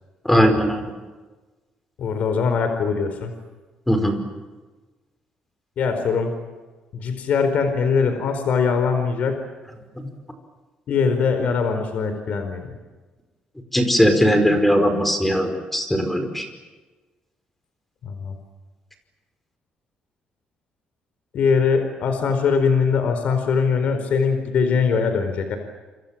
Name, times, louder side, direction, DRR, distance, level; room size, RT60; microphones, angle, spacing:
voice 1, 0.2-0.8 3.9-4.2 13.7-16.5, equal, 5° left, 6 dB, 5.0 m, -19 dB
voice 2, 2.0-3.3 5.8-6.3 6.9-9.4 10.9-12.8 18.0-18.4 21.3-25.6, left 5 dB, 60° left, 7 dB, 4.5 m, -21 dB
28.5 x 26.5 x 7.4 m, 1.3 s
cardioid pair, 140°, 3 cm